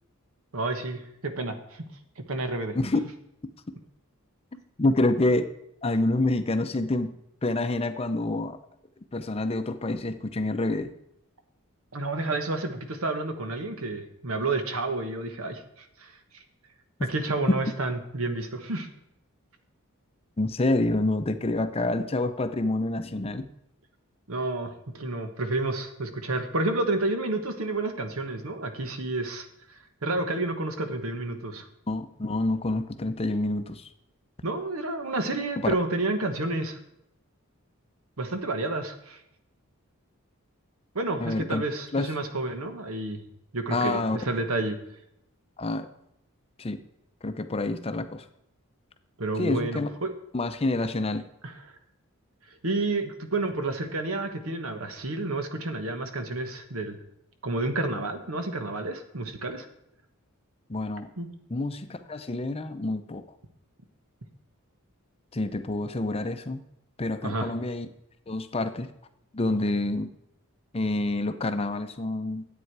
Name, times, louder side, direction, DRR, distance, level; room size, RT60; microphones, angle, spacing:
voice 1, 0.5-1.8 2.2-2.8 11.9-16.1 17.1-18.9 24.3-31.7 34.4-36.8 38.2-39.2 40.9-43.2 43.5-44.8 49.2-50.1 51.4-51.5 52.6-57.0 57.4-59.7 61.2-61.3 67.2-67.5, right 2 dB, 75° right, 7 dB, 1.2 m, -30 dB
voice 2, 4.5-5.5 5.8-7.1 7.4-8.6 9.1-10.9 20.4-23.5 31.9-33.9 35.6-35.7 41.2-41.6 41.9-42.1 43.7-44.2 45.6-45.9 46.6-46.8 47.2-48.2 49.4-49.9 50.3-51.2 60.7-61.1 61.5-63.2 65.3-66.6 67.0-67.9 68.3-68.9 69.3-70.1 70.7-72.5, left 2 dB, 25° left, 9 dB, 0.6 m, -27 dB
10.5 x 8.4 x 4.7 m, 0.78 s
head